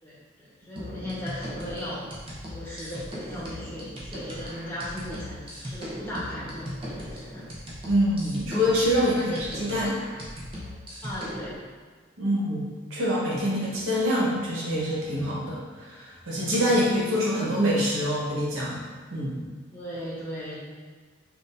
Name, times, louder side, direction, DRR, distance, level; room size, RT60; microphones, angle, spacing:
voice 1, 0.0-2.0 2.5-7.4 9.1-9.4 11.0-11.6 16.5-16.8 19.7-20.6, equal, 10° left, -9 dB, 1.2 m, -37 dB
sound 1, 0.8-11.5, equal, 25° right, 0.8 m, -38 dB
voice 2, 7.9-10.0 12.2-18.8 19.1-19.4, equal, 85° right, -5 dB, 1.2 m, -25 dB
6.1 x 2.5 x 2.6 m, 1.5 s
head